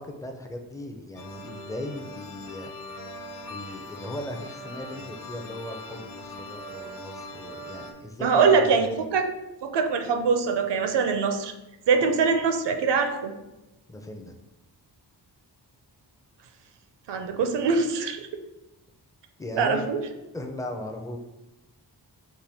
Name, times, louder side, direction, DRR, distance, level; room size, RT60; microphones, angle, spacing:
voice 1, 0.0-2.7 3.5-9.0 13.9-14.3 19.4-20.0 20.3-21.2, left 1 dB, 10° left, 3 dB, 0.4 m, -37 dB
sound 1, 1.1-7.9, left 1 dB, 50° left, 0.7 m, -41 dB
voice 2, 8.2-9.2 9.6-11.5 11.9-13.3 17.1-18.2 19.6-20.0, right 5 dB, 75° right, 6 dB, 0.5 m, -23 dB
4.3 x 2.2 x 3.4 m, 0.99 s
cardioid pair, 70°, 42 cm